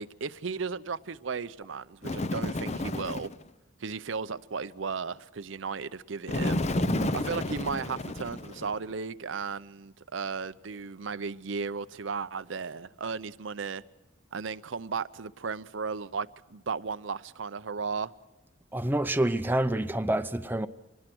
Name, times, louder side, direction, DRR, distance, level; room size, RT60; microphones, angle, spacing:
voice 1, 0.0-3.3 3.8-6.6 7.1-13.8 14.3-18.1, right 5 dB, 70° right, 0.6 m, -35 dB
Bird, 2.0-3.4 6.3-8.8, left 1 dB, 35° left, 0.8 m, -31 dB
voice 2, 6.8-7.2 18.7-20.7, right 1 dB, 10° right, 0.7 m, -28 dB
25.5 x 19.5 x 6.2 m
head